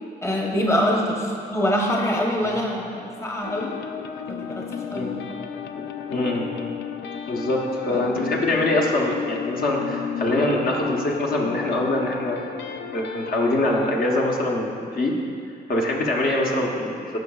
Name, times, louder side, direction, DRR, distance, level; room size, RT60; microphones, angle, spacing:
voice 1, 0.2-3.8 4.3-5.2 7.9-8.0, equal, 15° left, -1 dB, 0.9 m, -24 dB
sound 1, 3.4-13.8, left 8 dB, 70° left, 0.4 m, -33 dB
voice 2, 6.1-6.5 7.3-12.4 12.9-15.2 15.7-17.2, left 1 dB, 55° left, -2 dB, 1.0 m, -24 dB
12.0 x 5.3 x 2.4 m, 2.4 s
cardioid pair, 75°, 18 cm